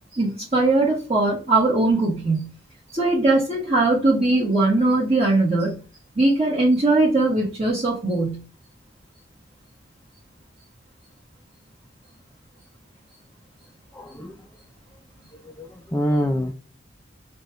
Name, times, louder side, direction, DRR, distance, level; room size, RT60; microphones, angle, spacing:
voice 1, 0.1-2.5 2.9-5.8 6.1-8.4, right 2 dB, 35° right, -8 dB, 1.5 m, -20 dB
voice 2, 13.9-14.3 15.6-16.5, equal, 10° left, 2 dB, 0.4 m, -25 dB
5.1 x 2.3 x 3.0 m, 0.35 s
head